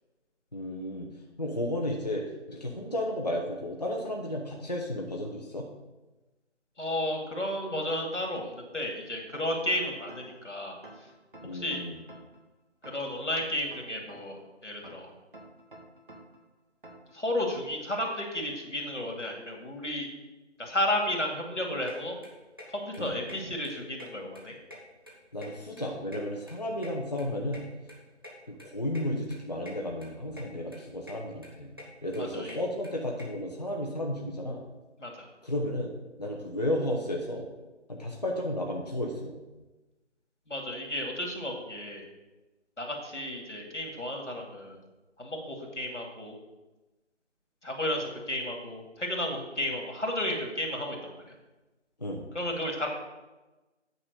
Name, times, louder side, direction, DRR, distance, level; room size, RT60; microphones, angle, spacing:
voice 1, 0.5-1.1 1.4-5.7 11.4-12.0 23.0-23.2 25.3-27.6 28.5-31.7 32.0-34.6 35.4-35.9 36.2-37.4 37.9-39.4 52.0-52.2, left 1 dB, 35° left, 0 dB, 0.8 m, -33 dB
voice 2, 6.8-10.8 11.5-11.8 12.8-15.1 17.1-20.1 20.6-22.2 22.7-24.6 32.2-32.6 35.0-35.3 40.5-42.0 42.8-44.8 45.2-46.3 47.6-51.0 52.3-52.9, left 1 dB, 85° left, 1 dB, 2.4 m, -33 dB
sound 1, 9.3-10.4 10.8-12.4 12.8-14.4 14.8-16.4 16.8-17.1, right 1 dB, 45° right, 1.6 m, -49 dB
sound 2, 21.9-22.0 22.2-22.7 22.9-23.0 23.3-23.4 23.6-24.4 24.7-25.9 26.1-27.6 27.9-28.0 28.2-28.3 28.6-28.7 28.9-29.1 29.3-29.7 30.0-30.4 30.7-31.2 31.4-33.2, left 1 dB, 20° right, 0.9 m, -47 dB
8.9 x 4.0 x 6.6 m, 1.1 s
figure-of-eight pair, 165°, 35 cm